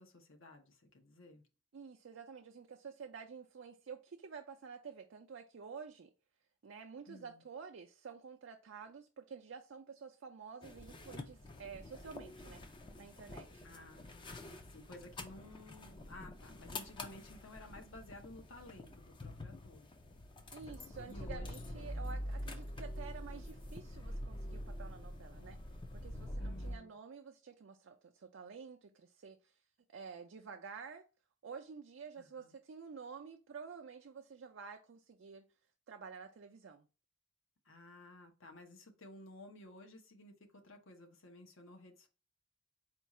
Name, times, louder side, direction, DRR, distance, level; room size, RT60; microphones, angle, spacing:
voice 1, 0.0-1.4 7.1-7.4 13.6-19.9 21.0-21.9 26.4-26.9 32.2-32.6 37.6-42.1, left 2 dB, 70° left, 0.9 m, -55 dB
voice 2, 1.7-6.1 6.6-12.6 13.0-13.7 20.5-29.6 29.9-31.0 31.4-35.5 35.9-36.9, right 5 dB, 65° right, 0.4 m, -50 dB
sound 1, 10.6-26.8, left 1 dB, 25° left, 0.4 m, -46 dB
4.5 x 2.4 x 4.1 m
head